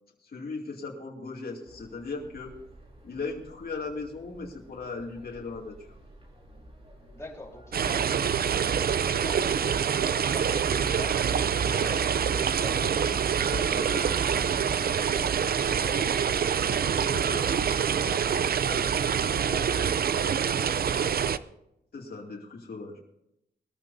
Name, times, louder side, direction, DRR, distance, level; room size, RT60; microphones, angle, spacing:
voice 1, 0.2-2.5 3.0-5.7 11.7-11.9 13.4-14.1 17.0-17.5 21.9-23.0, left 3 dB, 55° left, -3 dB, 2.6 m, -38 dB
sound 1, 1.6-21.0, equal, 35° right, 3.9 m, -51 dB
voice 2, 7.1-13.1 13.5-16.4 16.8-21.5, left 2 dB, 15° left, -3 dB, 3.8 m, -46 dB
sound 2, 7.7-21.4, right 7 dB, 60° right, 0.5 m, -26 dB
21.0 x 14.0 x 2.7 m, 0.82 s
wide cardioid pair, 115°, 18 cm